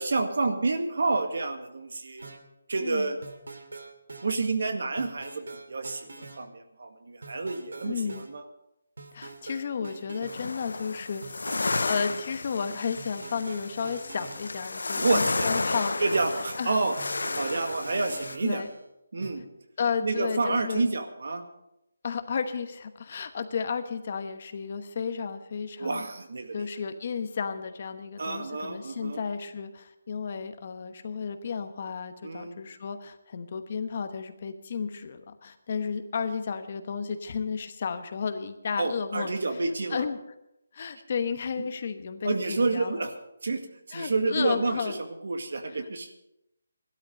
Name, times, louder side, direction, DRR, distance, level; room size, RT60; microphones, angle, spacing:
voice 1, 0.0-2.3 2.7-3.2 4.2-8.4 15.0-15.6 16.0-16.9 17.4-18.6 19.1-19.5 20.0-21.4 25.8-26.6 28.2-29.2 32.2-32.6 38.8-40.0 42.2-43.1 43.4-43.6 43.9-44.9 45.2-46.1, right 3 dB, 65° right, 6 dB, 1.9 m, -29 dB
sound 1, 2.2-2.4 3.2-4.3 5.0-6.4 7.2-8.3 9.0-10.4 11.2-12.3 13.0-14.5 15.2-16.5 17.0-18.9 19.2-19.3, right 3 dB, 85° right, 2.4 m, -44 dB
voice 2, 2.8-3.1 7.8-8.2 9.1-16.0 16.6-16.8 18.4-18.7 19.8-20.9 22.0-26.0 26.5-39.6 39.9-40.2 40.7-43.1 43.9-45.0, left 6 dB, 40° left, 9 dB, 1.0 m, -33 dB
sound 2, 10.3-18.4, left 3 dB, 80° left, 0.7 m, -32 dB
15.5 x 12.5 x 5.2 m, 0.85 s
hypercardioid pair, 170°, 0 cm